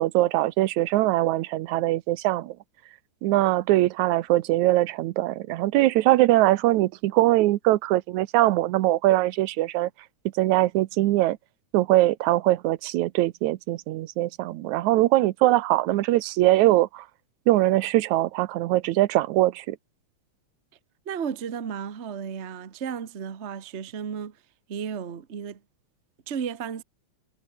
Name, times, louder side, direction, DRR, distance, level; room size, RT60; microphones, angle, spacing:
voice 1, 0.0-2.5 3.2-9.9 10.4-11.4 11.7-17.1 17.5-19.8, right 16 dB, 85° right, 2.1 m, -22 dB
voice 2, 21.0-24.4 24.7-25.6 26.3-26.8, right 7 dB, 45° right, 0.9 m, -33 dB
omnidirectional pair, 3.3 m